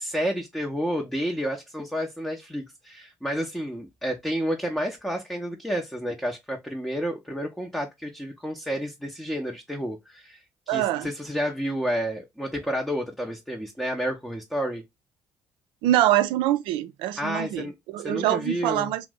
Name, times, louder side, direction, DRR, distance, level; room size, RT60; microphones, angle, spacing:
voice 1, 0.0-14.8 17.2-17.8 18.0-18.9, equal, 5° left, 0.7 m, -30 dB
voice 2, 10.7-11.1 15.8-19.1, right 13 dB, 75° right, 0.4 m, -24 dB
2.5 x 2.1 x 3.5 m
hypercardioid pair, 55°, 9 cm